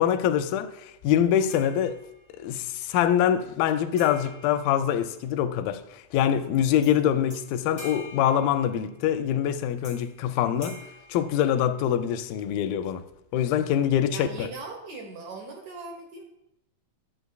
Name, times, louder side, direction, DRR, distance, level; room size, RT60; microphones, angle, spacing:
voice 1, 0.0-2.0 2.4-10.8 11.1-13.0 13.3-14.5, left 10 dB, 90° left, 2.3 m, -24 dB
sound 1, 1.5-2.5 4.0-5.5 6.8-7.0 7.3-9.1 9.8-10.2 10.6-12.0, left 1 dB, 20° left, 1.0 m, -46 dB
voice 2, 14.1-16.3, right 3 dB, 65° right, 2.0 m, -40 dB
11.0 x 8.2 x 2.3 m
omnidirectional pair, 4.0 m